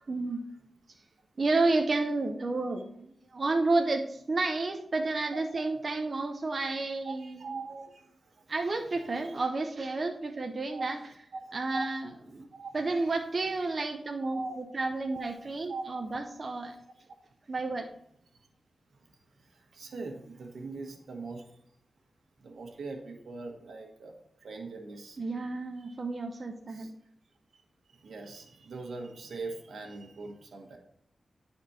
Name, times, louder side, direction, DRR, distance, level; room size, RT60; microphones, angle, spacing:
voice 1, 0.1-0.4 1.4-7.5 8.5-11.0 11.5-12.1 12.3-12.5 12.7-16.8 17.5-17.9 25.2-26.9, right 3 dB, 45° right, 4 dB, 0.7 m, -31 dB
voice 2, 5.3-5.6 7.0-8.5 9.1-9.4 10.7-10.9 11.3-11.9 12.5-12.9 14.3-14.6 15.1-15.3 15.7-16.0 18.3-18.5 19.1-21.5 22.4-24.1 24.4-25.2 25.9-26.0 26.7-26.9 27.5-27.6 27.9-30.8, right 3 dB, 85° right, 3 dB, 1.3 m, -41 dB
10.5 x 4.3 x 4.2 m, 0.71 s
wide cardioid pair, 85°, 0 cm